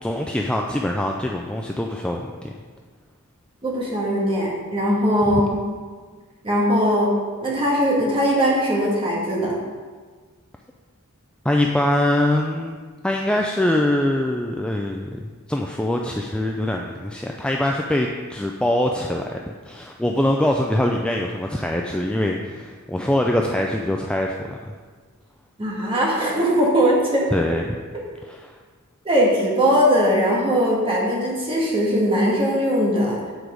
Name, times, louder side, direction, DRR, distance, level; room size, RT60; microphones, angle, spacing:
voice 1, 0.0-2.5 5.3-5.4 11.4-15.2 15.5-24.6 27.3-27.8 28.2-28.6, left 1 dB, 5° left, 1 dB, 0.3 m, -23 dB
voice 2, 3.6-5.4 6.4-7.1 7.4-9.6 25.6-27.3 29.0-33.2, equal, 25° right, -3 dB, 1.7 m, -20 dB
8.2 x 4.6 x 5.0 m, 1.5 s
head